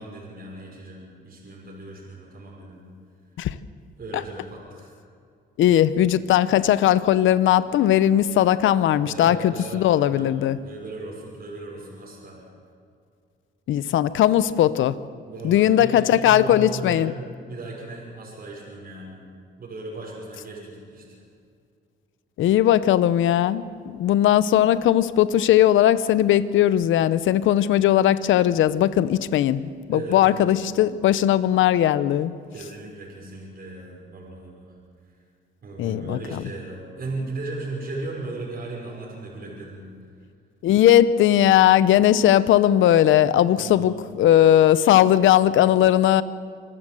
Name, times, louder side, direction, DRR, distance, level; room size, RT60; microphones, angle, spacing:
voice 1, 0.0-2.8 4.0-4.9 9.0-10.3 10.6-12.4 15.2-19.2 19.6-21.2 29.9-30.5 32.5-34.8 35.6-39.9 43.6-44.0, right 2 dB, 50° right, -3 dB, 5.9 m, -36 dB
voice 2, 5.6-10.6 13.7-15.0 15.4-17.1 22.4-32.3 35.8-36.4 40.6-46.2, left 12 dB, 80° left, 16 dB, 0.8 m, -18 dB
26.0 x 14.0 x 7.8 m, 2.3 s
cardioid pair, 90°, 20 cm